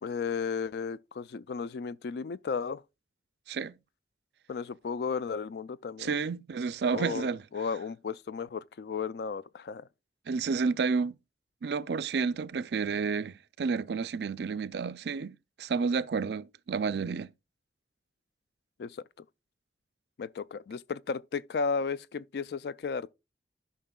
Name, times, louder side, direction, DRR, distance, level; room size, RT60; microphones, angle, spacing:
voice 1, 0.0-2.8 4.5-6.1 6.9-9.9 18.8-19.0 20.2-23.1, left 5 dB, 60° left, 0.3 m, -34 dB
voice 2, 6.0-7.4 10.3-11.2 11.6-17.3, right 5 dB, 65° right, 0.4 m, -30 dB
12.5 x 5.5 x 2.3 m
head